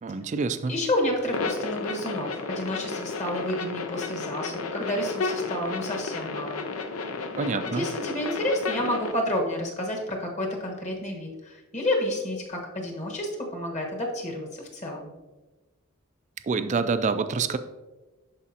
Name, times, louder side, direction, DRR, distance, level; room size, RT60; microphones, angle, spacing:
voice 1, 0.0-0.7 7.4-7.9 16.5-17.6, right 4 dB, 35° right, 10 dB, 0.3 m, -27 dB
voice 2, 0.7-6.6 7.7-15.1, left 1 dB, 35° left, 0 dB, 1.3 m, -30 dB
sound 1, 1.3-9.1, left 4 dB, 80° left, 0.7 m, -32 dB
11.0 x 4.8 x 2.8 m, 1.2 s
head